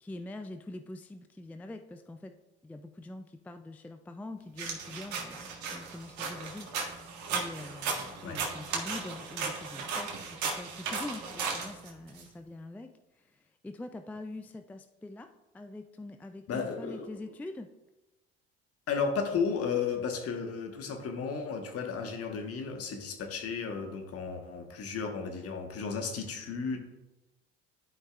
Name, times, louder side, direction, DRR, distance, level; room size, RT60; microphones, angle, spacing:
voice 1, 0.0-2.3 2.6-6.7 7.3-12.9 13.6-15.3 15.5-17.7, left 2 dB, 5° left, 7 dB, 0.4 m, -44 dB
sound 1, 4.6-12.2, right 5 dB, 65° right, 1.7 m, -36 dB
voice 2, 16.5-17.1 18.9-26.8, left 5 dB, 50° left, 4 dB, 1.3 m, -33 dB
11.5 x 5.3 x 2.5 m, 1.0 s
hypercardioid pair, 75°, 31 cm